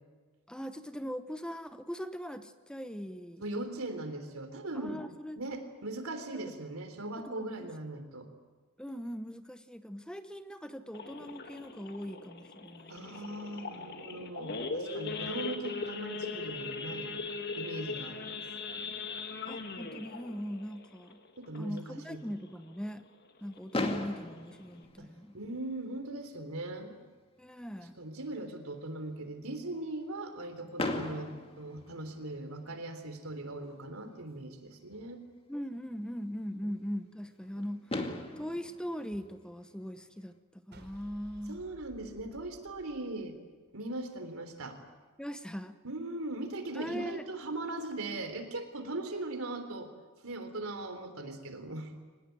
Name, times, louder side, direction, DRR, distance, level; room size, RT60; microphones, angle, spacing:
voice 1, 0.5-3.4 4.7-5.4 7.2-7.7 8.8-13.1 19.5-21.2 21.6-23.0 23.4-25.4 27.4-28.0 35.5-38.0 38.4-41.6 45.2-45.8 46.7-47.2, equal, 5° left, 9 dB, 0.9 m, -40 dB
voice 2, 3.4-5.0 5.4-8.3 12.9-17.1 17.5-18.4 21.4-22.2 25.0-25.1 25.3-27.0 27.8-35.2 36.6-36.7 41.5-43.4 43.7-44.8 45.8-49.9 50.2-51.9, right 2 dB, 80° right, 8 dB, 3.6 m, -39 dB
Idling / Accelerating revving vroom / Sawing, 10.9-22.0 22.4-22.6 22.9-23.0 23.5-23.7 24.2-24.3 24.5-24.8, left 4 dB, 50° left, 2.1 m, -40 dB
Fireworks, 23.7-25.8 26.6-26.7 26.9-27.1 27.4-27.5 30.8-32.6 34.3-34.4 37.4-37.5 37.9-40.2, left 2 dB, 25° left, 2.3 m, -38 dB
sound 1, 40.7-43.9, right 1 dB, 50° right, 5.2 m, -56 dB
24.5 x 20.0 x 9.3 m, 1.4 s
head